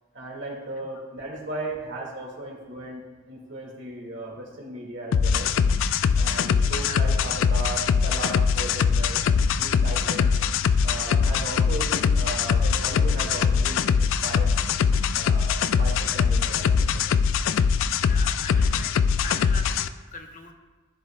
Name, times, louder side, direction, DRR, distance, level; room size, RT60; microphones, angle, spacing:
voice 1, 0.1-5.5 6.2-9.2 9.6-10.3 10.8-14.5 15.1-17.0, right 2 dB, 60° right, -1 dB, 2.0 m, -36 dB
sound 1, 5.1-19.9, left 6 dB, 70° left, 0.3 m, -22 dB
voice 2, 10.1-10.4 18.0-18.9 19.2-20.5, left 3 dB, 40° left, 4 dB, 0.7 m, -40 dB
13.5 x 7.1 x 2.3 m, 1.3 s
head